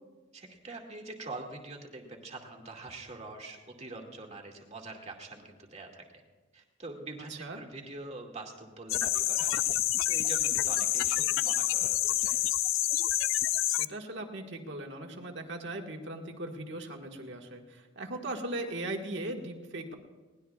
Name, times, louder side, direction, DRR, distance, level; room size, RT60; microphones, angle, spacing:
voice 1, 0.3-6.0 6.5-12.4, right 2 dB, 35° right, 1 dB, 2.1 m, -44 dB
voice 2, 7.3-7.6 13.7-19.9, right 1 dB, 60° right, 2 dB, 1.7 m, -38 dB
sound 1, 8.9-13.9, left 14 dB, 80° left, 0.4 m, -28 dB
21.0 x 18.5 x 2.4 m, 1.3 s
head